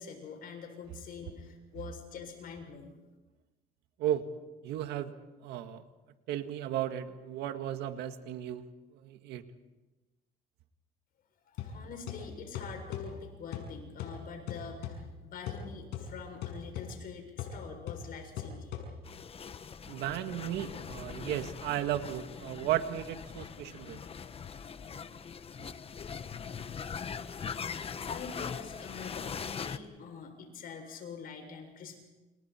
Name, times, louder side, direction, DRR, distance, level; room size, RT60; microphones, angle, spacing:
voice 1, 0.0-3.0 11.5-18.8 28.0-32.0, left 6 dB, 60° left, 4 dB, 7.1 m, -45 dB
voice 2, 4.6-5.1 5.4-5.8 6.3-8.6 8.9-9.4 19.9-24.0, right 11 dB, 85° right, 8 dB, 1.8 m, -34 dB
sound 1, 11.6-19.3, left 7 dB, 90° left, 6.5 m, -42 dB
sound 2, 19.0-29.8, left 6 dB, 35° left, 1.1 m, -41 dB
29.5 x 29.0 x 4.5 m, 1.1 s
cardioid pair, 110°, 17 cm